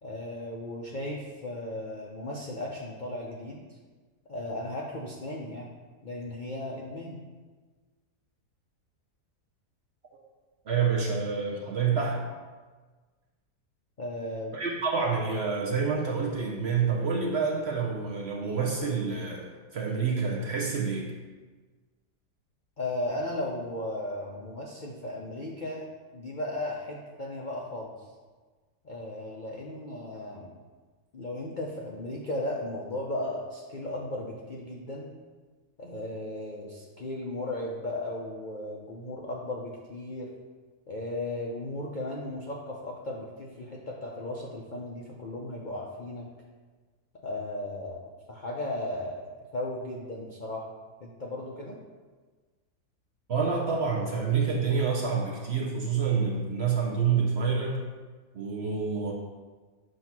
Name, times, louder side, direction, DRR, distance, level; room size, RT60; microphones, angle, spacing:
voice 1, 0.0-3.6 4.3-5.7 6.0-7.2 14.0-14.5 22.8-25.8 26.1-28.1 28.8-30.5 31.1-35.1 35.8-40.3 40.9-46.3 47.2-48.0 48.3-49.3 49.5-50.7 51.0-51.7, left 1 dB, 50° left, -2 dB, 0.5 m, -36 dB
voice 2, 10.6-12.3 14.5-21.1 53.3-57.8 58.3-59.1, right 5 dB, 50° right, -2 dB, 0.9 m, -28 dB
7.7 x 2.8 x 5.9 m, 1.4 s
omnidirectional pair, 1.7 m